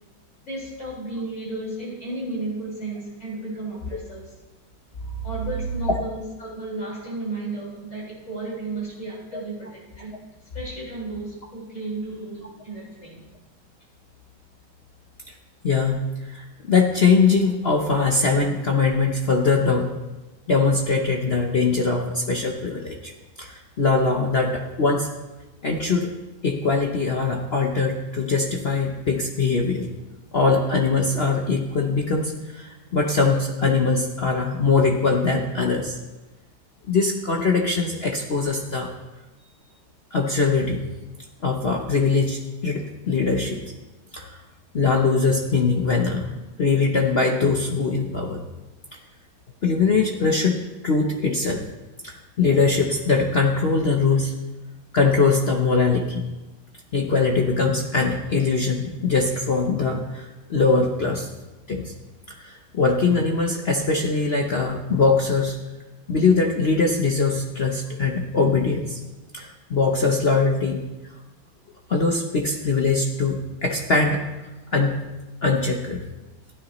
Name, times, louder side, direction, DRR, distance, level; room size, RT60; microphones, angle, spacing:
voice 1, 0.4-4.3 5.2-10.1 10.5-13.2, right 2 dB, 35° left, -6 dB, 5.1 m, -33 dB
voice 2, 15.6-19.9 20.5-23.1 23.4-25.1 25.6-26.1 26.4-29.9 30.3-36.0 36.9-38.9 40.1-40.9 41.4-43.6 44.1-44.4 44.7-46.3 46.6-48.4 49.6-50.5 50.8-51.6 52.0-54.4 54.9-56.2 56.9-61.3 61.7-61.9 62.3-65.6 66.1-69.0 69.3-70.8 71.9-74.3 74.7-75.1 75.4-76.0, left 4 dB, 60° left, 1 dB, 0.6 m, -22 dB
15.5 x 9.6 x 3.1 m, 1.1 s
omnidirectional pair, 2.2 m